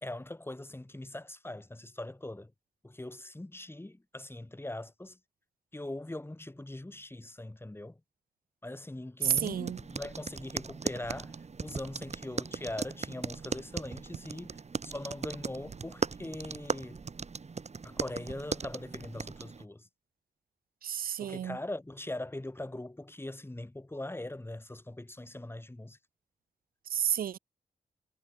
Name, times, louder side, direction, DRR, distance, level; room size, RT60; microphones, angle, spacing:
voice 1, 0.0-2.5 2.8-5.2 5.7-8.0 8.6-11.4 11.6-17.0 17.8-19.9 21.2-26.0, left 1 dB, 15° left, 1.7 m, -41 dB
sound 1, 9.2-19.6, right 5 dB, 45° right, 1.2 m, -38 dB
voice 2, 9.2-9.8 20.8-21.6 26.9-27.4, right 9 dB, 70° right, 0.4 m, -30 dB
cardioid pair, 50°, 15 cm